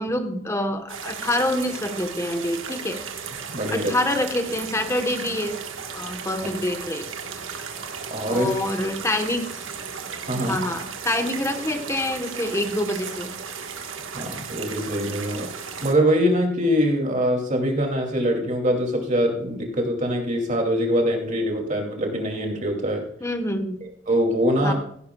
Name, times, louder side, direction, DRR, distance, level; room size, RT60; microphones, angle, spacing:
voice 1, 0.0-3.0 3.7-5.6 5.9-7.1 8.3-9.4 10.3-13.3 23.2-23.8 24.6-24.7, left 1 dB, 15° left, 6 dB, 1.1 m, -26 dB
sound 1, 0.9-15.9, right 6 dB, 85° right, 1.5 m, -35 dB
voice 2, 3.5-3.9 8.1-8.5 10.3-10.6 14.1-23.0 23.8-24.7, equal, 40° right, 1 dB, 2.6 m, -23 dB
16.5 x 10.5 x 2.3 m, 0.65 s
head